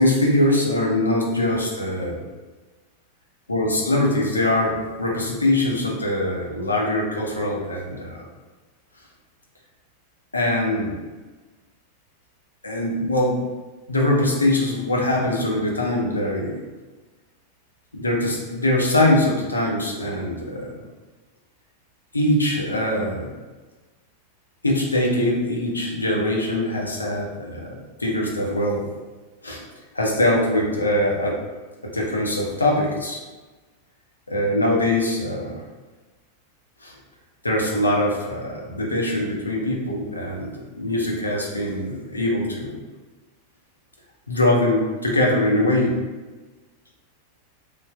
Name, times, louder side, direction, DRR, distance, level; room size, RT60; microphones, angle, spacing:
voice 1, 0.0-2.2 3.5-8.2 10.3-11.0 12.6-13.4 13.9-16.6 17.9-20.8 22.1-23.3 24.6-27.7 28.0-28.9 29.4-29.6 29.9-31.4 31.8-33.2 34.3-35.6 36.8-37.0 37.4-42.8 44.3-46.0, left 1 dB, 80° left, -2 dB, 0.5 m, -22 dB
3.2 x 2.4 x 2.2 m, 1.3 s
figure-of-eight pair, 90°, 0 cm